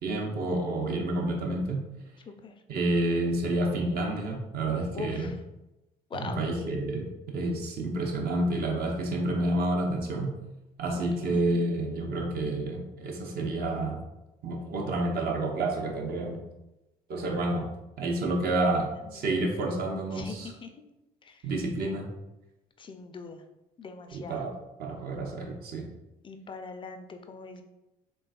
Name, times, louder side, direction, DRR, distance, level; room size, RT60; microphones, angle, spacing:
voice 1, 0.0-1.8 2.7-5.3 6.1-10.3 10.8-14.0 14.4-16.4 17.1-17.7 18.0-20.5 21.4-22.1 24.1-25.9, right 2 dB, 50° right, 1 dB, 0.6 m, -29 dB
voice 2, 0.8-1.1 2.3-2.5 4.9-5.3 6.1-6.4 10.9-11.6 20.1-20.7 21.2-21.4 22.8-23.4 23.8-24.4 26.2-27.6, left 4 dB, 25° left, 7 dB, 0.4 m, -42 dB
3.2 x 2.3 x 2.3 m, 0.96 s
figure-of-eight pair, 50°, 20 cm